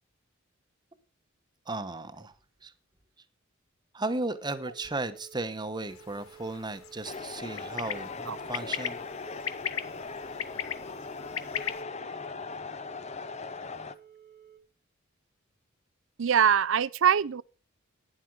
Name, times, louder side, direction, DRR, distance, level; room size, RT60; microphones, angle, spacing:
voice 1, 1.7-2.3 2.6-2.7 3.9-9.0, right 2 dB, 20° right, 1.1 m, -35 dB
sound 1, 4.3-14.6, right 9 dB, 15° left, 2.0 m, -54 dB
sound 2, 5.9-11.8, left 9 dB, 85° left, 0.9 m, -38 dB
sound 3, 7.0-13.9, left 4 dB, 35° left, 0.8 m, -39 dB
voice 2, 16.2-17.4, right 8 dB, 65° right, 0.5 m, -23 dB
12.0 x 10.0 x 4.7 m
head